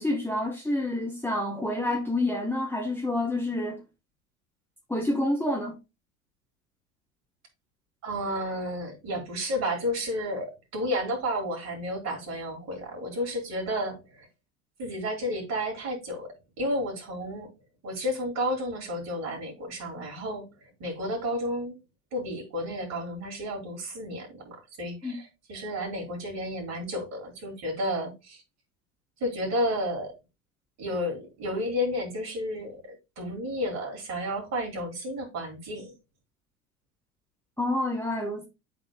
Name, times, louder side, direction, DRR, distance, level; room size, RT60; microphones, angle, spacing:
voice 1, 0.0-3.8 4.9-5.8 25.0-25.1 37.6-38.5, left 1 dB, 5° left, 1.2 m, -28 dB
voice 2, 8.0-14.3 14.8-17.5 17.8-21.8 22.1-28.4 29.2-30.1 30.8-35.9, equal, 40° right, 3.3 m, -32 dB
11.5 x 4.1 x 2.2 m
figure-of-eight pair, 70°, 41 cm